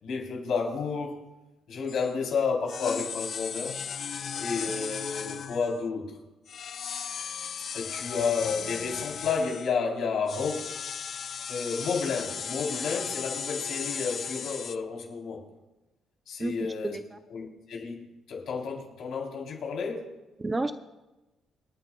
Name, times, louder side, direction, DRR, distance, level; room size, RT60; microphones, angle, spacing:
voice 1, 0.0-1.2 1.7-3.7 4.4-6.1 7.7-10.7 11.5-15.5 16.3-17.0 17.3-20.1, left 5 dB, 65° left, -1 dB, 3.6 m, -31 dB
sound 1, 1.9-2.1 2.7-5.9 6.5-9.7 10.3-14.8, left 7 dB, 45° left, 0.4 m, -36 dB
voice 2, 16.4-17.2 20.4-20.7, right 2 dB, 15° right, 10 dB, 0.5 m, -31 dB
27.5 x 9.5 x 2.3 m, 1.0 s
cardioid pair, 130°, 0 cm